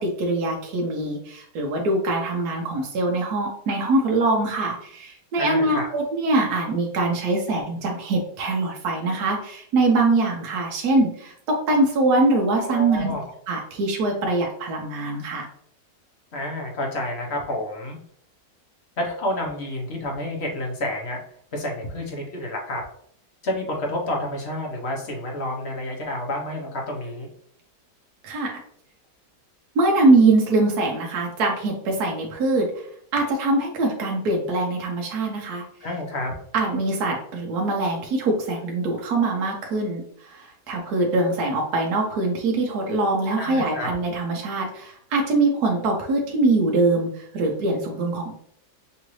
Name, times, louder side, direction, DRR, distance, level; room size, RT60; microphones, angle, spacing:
voice 1, 0.0-13.1 13.5-15.5 28.2-28.6 29.7-32.9 33.1-35.6 36.5-48.4, right 2 dB, 65° right, 0 dB, 1.2 m, -23 dB
voice 2, 5.4-5.9 12.6-13.3 16.3-18.0 19.0-21.2 21.5-22.8 23.4-27.3 35.8-36.3 43.4-43.9, left 1 dB, 45° left, 0 dB, 1.0 m, -29 dB
5.6 x 2.6 x 3.1 m, 0.66 s
omnidirectional pair, 1.9 m